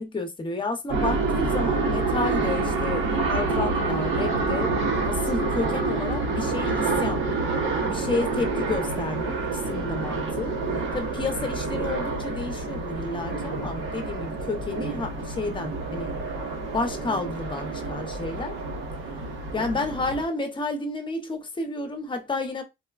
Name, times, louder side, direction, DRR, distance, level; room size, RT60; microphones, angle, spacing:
voice 1, 0.0-7.2 7.9-10.6 10.9-16.1 16.7-18.6 19.5-22.6, left 3 dB, 25° left, 0.8 m, -31 dB
sound 1, 0.9-20.2, right 3 dB, 75° right, 1.1 m, -27 dB
4.1 x 2.1 x 2.3 m
cardioid pair, 90°, 20 cm